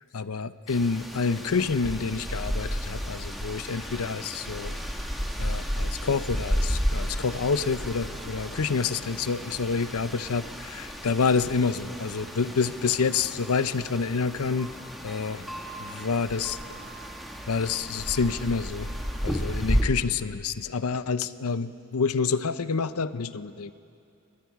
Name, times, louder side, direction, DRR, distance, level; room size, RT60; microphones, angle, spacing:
voice 1, 0.1-4.8 5.4-14.7 15.0-15.5 15.8-16.6 17.5-18.9 19.2-23.7, left 5 dB, 85° left, 14 dB, 0.6 m, -28 dB
sound 1, 0.7-19.8, equal, ahead, 1.4 m, -33 dB
27.0 x 21.0 x 4.7 m, 2.5 s
head